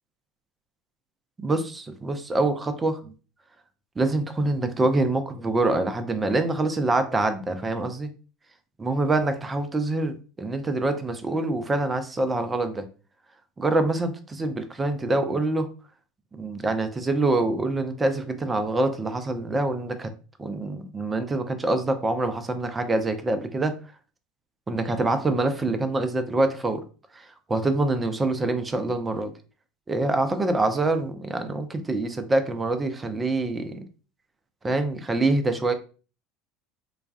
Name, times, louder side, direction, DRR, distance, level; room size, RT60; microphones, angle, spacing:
voice 1, 1.4-3.1 4.0-8.1 8.8-12.8 13.6-15.7 16.3-20.1 20.4-23.7 24.7-26.8 27.1-29.3 29.9-33.8 34.6-35.7, right 2 dB, 20° right, 8 dB, 0.5 m, -25 dB
4.0 x 2.3 x 2.3 m, 0.36 s
hypercardioid pair, 75°, 0 cm